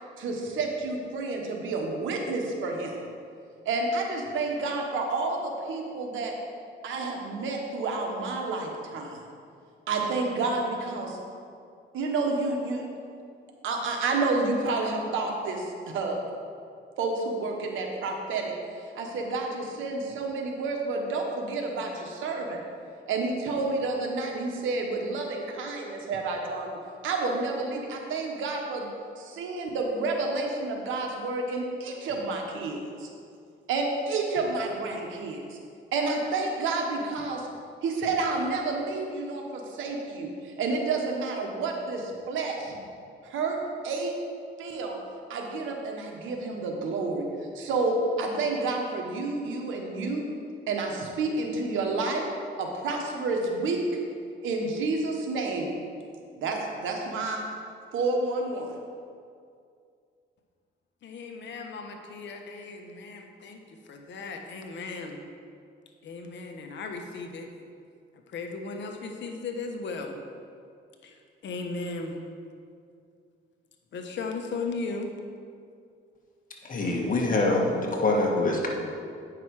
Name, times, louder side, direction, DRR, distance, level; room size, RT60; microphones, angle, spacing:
voice 1, 0.2-3.0 3.6-6.3 6.8-9.2 9.9-11.2 11.9-12.8 13.6-16.2 17.0-22.6 23.1-26.8 27.0-28.9 29.2-33.1 33.7-35.6 35.9-37.5 37.8-42.8 43.2-43.6 43.8-44.1 44.6-45.0 45.3-47.2 47.5-50.2 50.7-52.2 52.6-53.8 54.4-55.7 56.4-57.4 57.9-58.7, right 3 dB, 80° right, 1 dB, 1.3 m, -30 dB
voice 2, 61.0-65.2 66.0-67.5 68.3-70.2 71.0-72.2 73.9-75.1, left 3 dB, 65° left, 3 dB, 1.0 m, -36 dB
voice 3, 76.6-78.7, left 2 dB, 45° left, 0 dB, 1.6 m, -25 dB
9.0 x 5.9 x 4.8 m, 2.3 s
cardioid pair, 90°, 20 cm